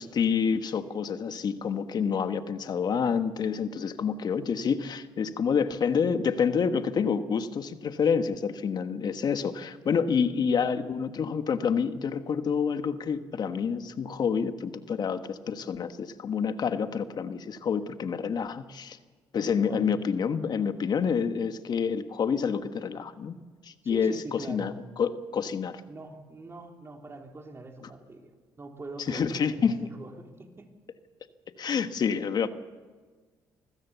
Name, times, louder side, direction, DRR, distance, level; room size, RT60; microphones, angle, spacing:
voice 1, 0.0-19.0 19.3-23.3 23.6-24.7 25.0-25.8 29.1-29.7 31.6-32.5, left 6 dB, 50° left, 9 dB, 1.4 m, -28 dB
voice 2, 23.8-24.8 25.9-30.7, right 2 dB, 30° right, 3 dB, 3.4 m, -43 dB
24.5 x 15.5 x 7.0 m, 1.4 s
supercardioid pair, 70°, 9 cm